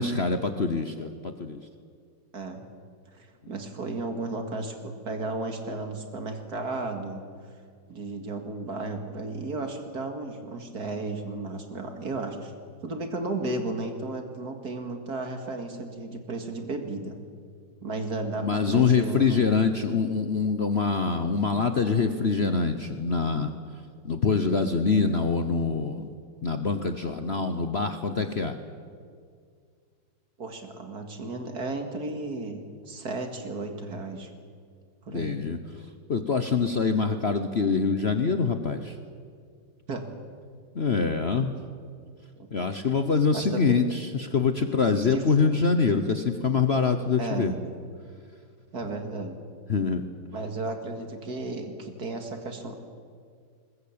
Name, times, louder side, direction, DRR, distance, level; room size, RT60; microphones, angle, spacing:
voice 1, 0.0-1.6 18.4-23.5 24.0-26.1 26.4-28.6 35.1-35.6 36.1-39.0 40.7-41.5 42.5-47.5 49.7-50.0, left 5 dB, 40° left, 8 dB, 1.0 m, -25 dB
voice 2, 2.3-2.7 3.2-7.2 7.9-12.5 12.8-17.1 17.8-19.4 30.4-34.3 35.0-35.4 39.9-40.1 42.4-42.5 43.3-43.8 45.1-45.6 47.1-47.6 48.7-49.4 50.3-52.8, right 3 dB, 55° right, 5 dB, 2.6 m, -34 dB
21.0 x 20.5 x 8.7 m, 2.1 s
omnidirectional pair, 2.0 m